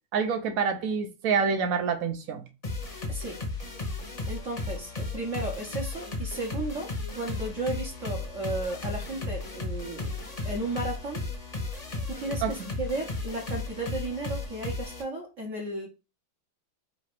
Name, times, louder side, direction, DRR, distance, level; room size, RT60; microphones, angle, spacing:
voice 1, 0.1-2.4 12.4-12.7, right 6 dB, 65° right, 0.8 m, -27 dB
sound 1, 2.6-15.0, left 3 dB, 25° left, 0.8 m, -35 dB
voice 2, 3.1-3.4 4.3-10.2 10.4-11.2 12.1-15.9, right 2 dB, 45° right, 1.2 m, -34 dB
3.9 x 2.8 x 4.8 m
omnidirectional pair, 2.2 m